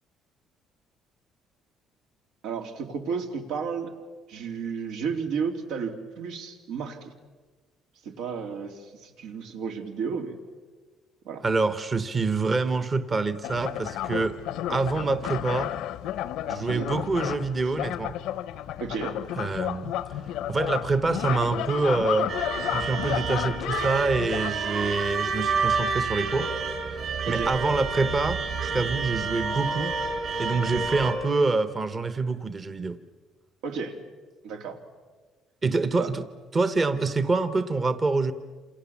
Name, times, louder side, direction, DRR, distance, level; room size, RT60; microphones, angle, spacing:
voice 1, 2.4-3.9 4.3-7.1 8.0-10.4 11.2-11.4 16.5-16.9 17.6-17.7 18.8-19.2 27.2-27.5 33.6-34.0 34.4-34.8 36.0-36.1, right 5 dB, 90° right, 4 dB, 3.1 m, -33 dB
voice 2, 11.4-14.4 14.7-15.7 16.5-18.1 19.4-19.9 20.5-22.3 22.7-26.5 26.9-29.9 30.4-33.0 35.6-36.2 36.5-38.3, right 3 dB, 20° right, 11 dB, 0.9 m, -26 dB
sound 1, 13.4-24.5, left 12 dB, 80° left, 0.8 m, -32 dB
sound 2, 22.3-31.1, right 4 dB, 45° right, 5.5 m, -29 dB
28.0 x 28.0 x 7.1 m, 1.4 s
cardioid pair, 165°, 0 cm